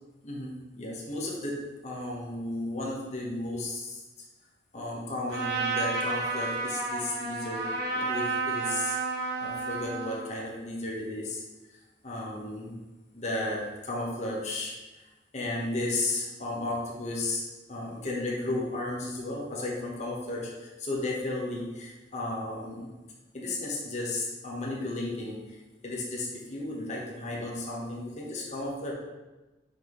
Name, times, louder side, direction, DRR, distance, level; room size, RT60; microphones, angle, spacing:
voice 1, 0.2-4.0 4.7-9.0 9.4-11.4 12.0-12.7 13.1-14.7 15.3-22.9 23.3-25.6 25.8-28.9, left 2 dB, 40° left, -3 dB, 1.1 m, -34 dB
Trumpet, 5.3-10.2, right 3 dB, 65° right, 1.4 m, -31 dB
5.8 x 5.4 x 3.1 m, 1.1 s
head